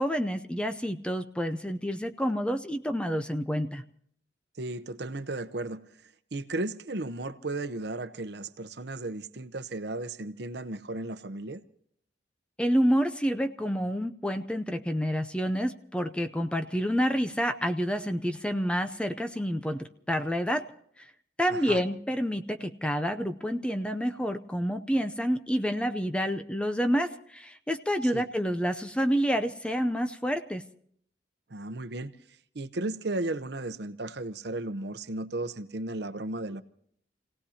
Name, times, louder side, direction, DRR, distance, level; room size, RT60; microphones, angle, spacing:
voice 1, 0.0-3.8 12.6-20.7 21.0-21.1 21.4-30.6, equal, 5° left, 8 dB, 0.6 m, -28 dB
voice 2, 4.6-11.6 21.5-21.8 28.1-28.3 31.5-32.1 32.5-36.6, right 2 dB, 65° right, 12 dB, 0.8 m, -35 dB
29.0 x 17.5 x 2.8 m, 0.63 s
head